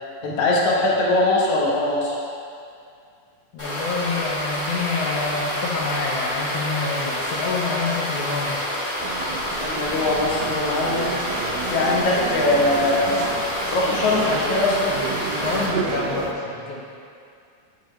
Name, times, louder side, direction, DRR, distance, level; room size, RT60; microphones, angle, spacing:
voice 1, 0.2-2.2 9.6-11.2 11.7-13.2 13.7-14.9, left 2 dB, 60° left, -3 dB, 1.8 m, -21 dB
voice 2, 3.5-8.7 15.4-16.8, left 4 dB, 75° left, -3 dB, 2.2 m, -27 dB
sound 1, 3.6-15.7, left 1 dB, 20° left, 1.4 m, -28 dB
sound 2, 9.0-16.3, right 6 dB, 85° right, 1.5 m, -31 dB
8.4 x 7.0 x 3.2 m, 2.4 s
omnidirectional pair, 3.6 m